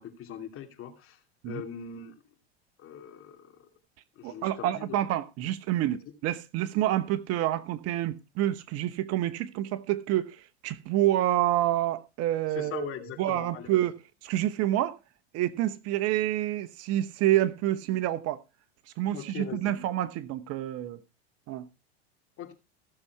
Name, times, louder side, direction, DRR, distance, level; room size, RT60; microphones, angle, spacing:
voice 1, 0.0-2.1 2.8-3.7 4.2-5.0 12.5-13.8 19.1-19.8 22.4-22.5, left 8 dB, 40° left, 2.6 m, -41 dB
voice 2, 4.2-10.4 10.6-12.9 13.2-13.9 14.2-14.9 15.3-18.4 19.0-21.0 21.5-21.7, right 13 dB, 45° right, 1.0 m, -28 dB
15.0 x 7.0 x 4.7 m
hypercardioid pair, 100°, 33 cm